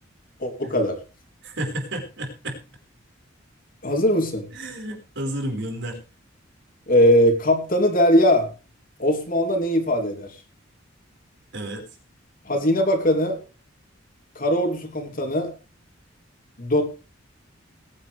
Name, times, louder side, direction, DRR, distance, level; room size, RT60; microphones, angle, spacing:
voice 1, 0.4-1.0 3.8-4.5 6.9-8.5 9.0-10.3 12.4-13.4 14.3-15.5 16.6-16.8, equal, 45° left, 3 dB, 3.2 m, -20 dB
voice 2, 1.4-2.6 4.5-6.0 11.5-11.8, right 1 dB, 65° right, 2 dB, 5.0 m, -31 dB
21.0 x 10.0 x 3.4 m, 0.33 s
head